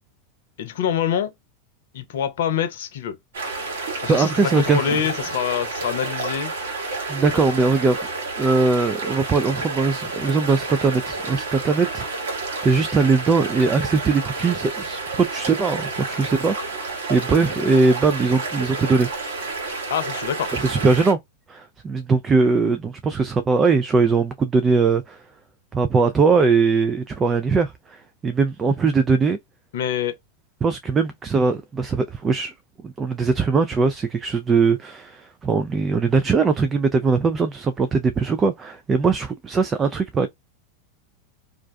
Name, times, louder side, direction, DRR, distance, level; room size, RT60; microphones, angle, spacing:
voice 1, 0.6-1.3 1.9-3.2 4.0-6.5 7.3-7.4 19.9-20.5 29.7-30.1, left 8 dB, 70° left, 0.7 m, -25 dB
sound 1, 3.3-21.1, right 3 dB, 75° right, 1.2 m, -30 dB
voice 2, 4.1-5.0 7.1-8.1 8.4-12.0 12.6-19.1 20.6-21.2 21.5-25.2 25.7-29.4 30.6-32.5 32.8-40.3, right 4 dB, 25° right, 0.4 m, -20 dB
2.5 x 2.2 x 2.2 m
hypercardioid pair, 95°, 0 cm